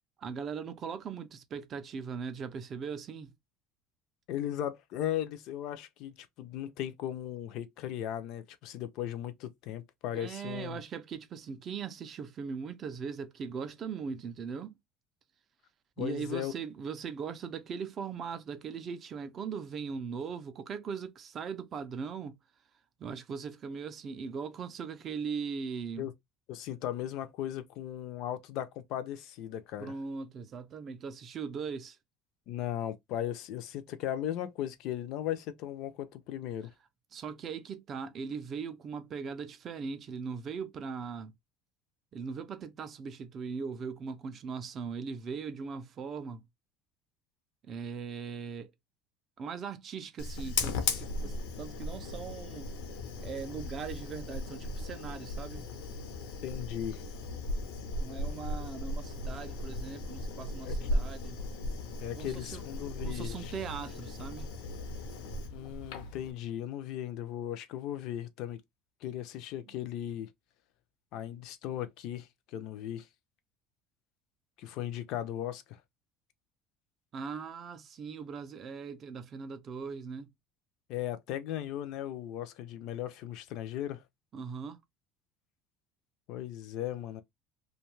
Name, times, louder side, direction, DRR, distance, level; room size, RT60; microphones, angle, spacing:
voice 1, 0.2-3.3 10.2-14.7 16.0-22.4 23.0-26.1 29.8-32.0 37.1-41.3 42.1-46.4 47.7-48.7 49.4-52.7 53.2-55.7 58.0-61.4 62.2-62.6 63.0-64.5 69.7-69.8 77.1-80.3 84.3-84.8, right 6 dB, 25° right, 0.3 m, -39 dB
voice 2, 4.3-10.8 16.0-16.5 26.0-26.1 26.5-29.9 32.5-36.7 56.4-57.0 60.6-60.8 62.0-63.6 65.5-68.6 69.0-70.3 71.1-73.1 74.6-75.8 80.9-84.0 86.3-87.2, left 11 dB, 50° left, 0.4 m, -37 dB
Fire, 50.2-66.3, left 2 dB, 85° left, 0.6 m, -37 dB
2.6 x 2.2 x 3.0 m
cardioid pair, 175°, 0 cm